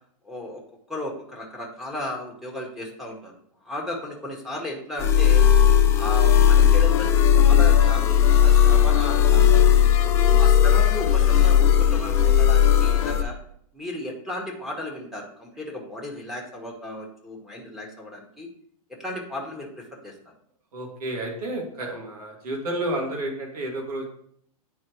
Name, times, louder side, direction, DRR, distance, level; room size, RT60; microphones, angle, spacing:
voice 1, 0.2-0.6 0.9-3.3 3.6-5.5 6.0-7.1 7.4-9.6 10.3-13.3 13.7-18.5 19.0-20.1, left 1 dB, ahead, -3 dB, 1.4 m, -34 dB
sound 1, 5.0-13.2, left 9 dB, 15° left, 0.3 m, -17 dB
sound 2, 6.6-13.2, left 9 dB, 60° left, 0.8 m, -31 dB
voice 2, 20.7-24.0, right 1 dB, 85° right, -1 dB, 2.3 m, -31 dB
9.6 x 4.5 x 3.1 m, 0.65 s
hypercardioid pair, 150°, 19 cm